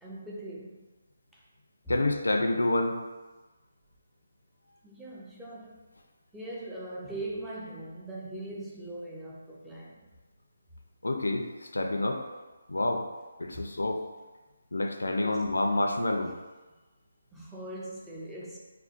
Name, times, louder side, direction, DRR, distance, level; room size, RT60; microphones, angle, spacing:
voice 1, 0.0-0.9 1.3-1.4 1.8-1.9 4.8-5.8 6.3-10.1 13.4-13.7 15.2-15.4 16.2-16.3 17.3-18.6, right 1 dB, 5° right, -6 dB, 0.4 m, -41 dB
voice 2, 1.9-3.0 11.0-12.2 12.7-13.0 13.4-14.0 14.7-16.3, left 2 dB, 80° left, 4 dB, 0.4 m, -28 dB
3.6 x 2.3 x 2.4 m, 1.2 s
figure-of-eight pair, 155°, 0 cm